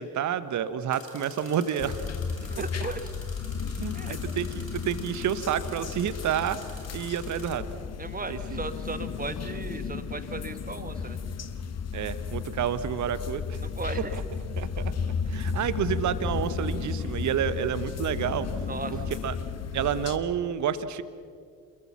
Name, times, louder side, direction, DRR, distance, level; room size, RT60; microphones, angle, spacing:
voice 1, 0.0-2.1 3.8-6.6 6.9-7.6 8.3-8.6 11.9-13.6 14.1-14.2 14.6-14.8 15.3-18.5 18.9-19.3 19.7-21.0, right 9 dB, 45° right, 14 dB, 1.2 m, -29 dB
sound 1, 0.9-7.6, left 2 dB, 90° left, 1.8 m, -48 dB
sound 2, 1.8-20.2, left 6 dB, 40° left, 1.4 m, -34 dB
voice 2, 2.5-3.1 3.9-4.2 8.0-11.2 13.6-14.2 18.7-19.0, right 3 dB, 20° right, 10 dB, 1.8 m, -36 dB
28.5 x 22.0 x 5.9 m, 2.4 s
figure-of-eight pair, 45°, 40 cm